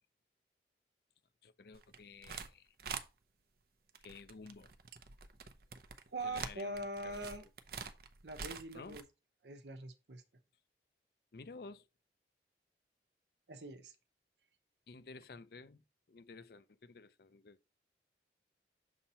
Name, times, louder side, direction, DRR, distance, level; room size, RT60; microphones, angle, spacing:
voice 1, 1.4-2.7 4.0-4.7 6.2-7.5 8.7-9.0 11.3-11.9 14.9-15.8 16.1-17.6, left 4 dB, 60° left, 0.5 m, -53 dB
sound 1, 1.7-2.5 2.8-3.0 3.9-9.0, right 6 dB, 55° right, 0.7 m, -46 dB
voice 2, 6.1-7.4 8.2-9.0 9.4-10.2 13.5-13.9, right 2 dB, 75° right, 0.9 m, -43 dB
7.1 x 2.9 x 5.5 m
head